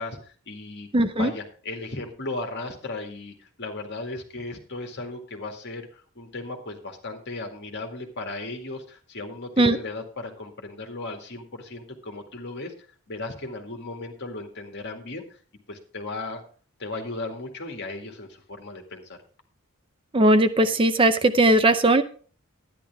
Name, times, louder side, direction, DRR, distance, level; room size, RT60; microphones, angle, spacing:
voice 1, 0.0-0.9 1.2-12.7 13.1-15.4 15.7-16.4 16.8-19.2, left 2 dB, 55° left, 3 dB, 2.2 m, -36 dB
voice 2, 0.9-1.3 9.6-9.8 20.1-22.0, right 1 dB, 25° right, 10 dB, 0.6 m, -18 dB
11.5 x 10.5 x 3.5 m, 0.40 s
head